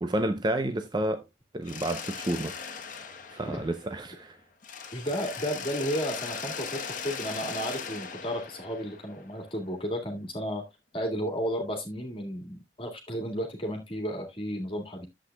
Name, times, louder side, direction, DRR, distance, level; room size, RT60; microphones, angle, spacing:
voice 1, 0.0-1.2 1.5-2.6 2.8-4.4, right 1 dB, 25° right, 0.6 m, -30 dB
Mechanisms, 1.6-4.2 4.6-9.5, left 6 dB, 45° left, 1.2 m, -39 dB
voice 2, 4.9-10.6 10.9-15.1, equal, 30° left, 1.9 m, -33 dB
11.5 x 7.8 x 2.2 m
head